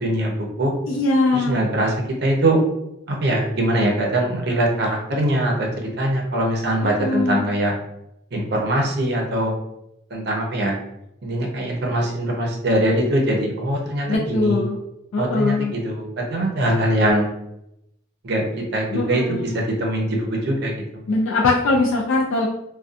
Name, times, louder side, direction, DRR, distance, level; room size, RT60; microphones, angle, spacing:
voice 1, 0.0-0.7 1.3-1.9 2.2-2.6 3.1-7.7 8.3-9.5 10.1-10.7 11.2-14.6 15.2-17.3 18.2-20.7, right 1 dB, 55° right, 0 dB, 0.5 m, -22 dB
voice 2, 0.9-1.7 6.8-7.5 14.1-14.8 15.1-15.7 18.9-19.6 21.1-22.5, left 3 dB, 80° left, -1 dB, 0.3 m, -21 dB
2.4 x 2.2 x 2.5 m, 0.82 s
head